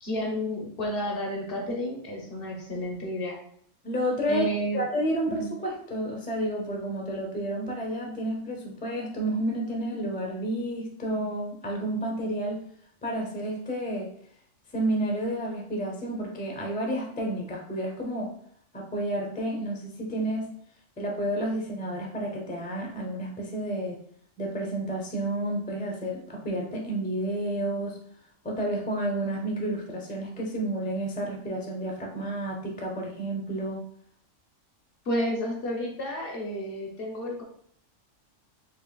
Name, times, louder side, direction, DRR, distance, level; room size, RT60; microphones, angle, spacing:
voice 1, 0.0-3.4 4.3-4.8 5.4-5.5 35.1-37.4, equal, 50° left, 0 dB, 0.9 m, -31 dB
voice 2, 3.8-12.6 13.0-14.1 14.7-18.3 18.7-20.5 21.0-24.0 24.4-28.0 28.4-33.8, right 1 dB, 10° left, -1 dB, 0.4 m, -30 dB
4.5 x 2.8 x 2.3 m, 0.64 s
omnidirectional pair, 1.3 m